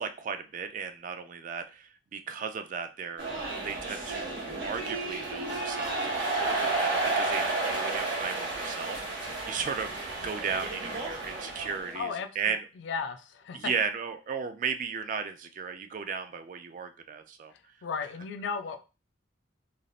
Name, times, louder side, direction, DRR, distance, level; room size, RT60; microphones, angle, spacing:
voice 1, 0.0-3.4 3.6-12.7 13.5-17.5, right 6 dB, 45° right, 0.3 m, -35 dB
sound 1, 3.2-11.9, right 2 dB, 75° right, 1.3 m, -32 dB
voice 2, 11.9-13.6 17.8-18.8, left 5 dB, 65° left, 0.4 m, -35 dB
3.3 x 2.5 x 2.3 m
head